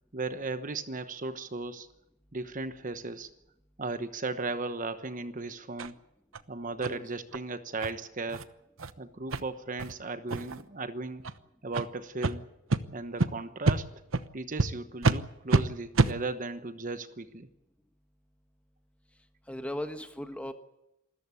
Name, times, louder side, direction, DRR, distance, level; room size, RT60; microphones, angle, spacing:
voice 1, 0.1-1.9 2.3-3.3 3.8-5.9 6.5-8.5 9.0-11.2 11.6-12.4 12.9-13.9 14.3-17.5, right 3 dB, 40° right, 10 dB, 1.1 m, -36 dB
sound 1, 5.8-5.9 6.3-6.4 6.8-6.9 7.3-7.4 7.8-7.9 8.3-8.4 8.8-8.9 9.3-9.4 9.8-9.9 10.3-10.6 11.2-11.3 11.7-11.9 12.2-12.3 12.7-12.8 13.2-13.3 13.6-13.8 14.1-14.2 14.6-14.7 15.0-15.2 15.5-15.6 15.9-16.1, right 3 dB, 75° right, 1.0 m, -26 dB
voice 2, 19.5-20.5, left 1 dB, 5° left, 7 dB, 1.4 m, -37 dB
27.0 x 14.0 x 8.4 m, 0.88 s
head